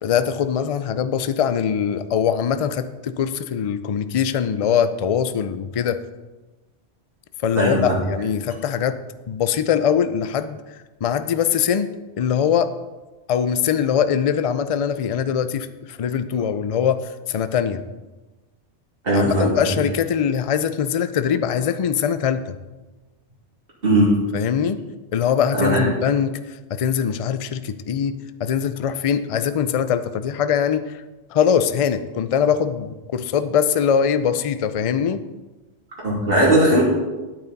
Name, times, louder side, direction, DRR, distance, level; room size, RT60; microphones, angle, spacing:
voice 1, 0.0-6.0 7.4-9.0 9.3-10.6 11.0-11.9 12.2-12.7 13.3-17.8 19.1-22.5 24.3-24.8 25.1-26.4 26.7-31.0 31.3-35.2, left 8 dB, 45° left, 11 dB, 0.4 m, -22 dB
voice 2, 7.6-7.9 19.0-19.8 23.8-24.1 25.5-25.8 36.0-36.8, right 1 dB, 55° right, -5 dB, 2.8 m, -18 dB
10.5 x 8.9 x 4.0 m, 1.1 s
omnidirectional pair, 1.1 m